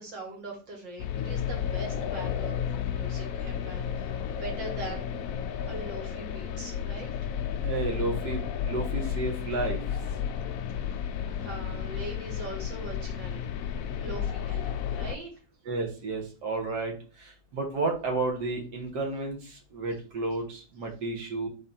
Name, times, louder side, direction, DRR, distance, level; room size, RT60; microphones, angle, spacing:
voice 1, 0.0-5.1 5.7-7.1 10.8-13.7 14.0-15.3, right 2 dB, 85° right, -1 dB, 2.6 m, -42 dB
sound 1, 1.0-15.2, left 8 dB, 75° left, 0.7 m, -32 dB
voice 2, 7.6-9.8 15.7-16.9 17.2-21.5, right 3 dB, 65° right, 1 dB, 1.9 m, -32 dB
4.4 x 3.8 x 5.6 m, 0.36 s
omnidirectional pair, 1.9 m